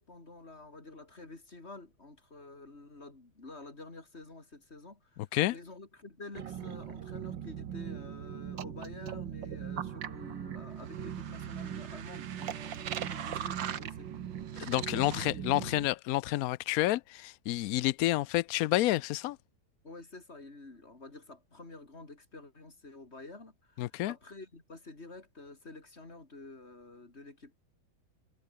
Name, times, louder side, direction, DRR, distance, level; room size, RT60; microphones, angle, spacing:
voice 1, 0.0-14.1 14.9-15.4 19.8-27.6, left 2 dB, 35° left, 4.0 m, -49 dB
sound 1, 6.3-15.9, right 9 dB, 70° right, 2.0 m, -39 dB
voice 2, 14.6-19.4 23.8-24.1, left 16 dB, 80° left, 0.8 m, -29 dB
omnidirectional pair, 2.1 m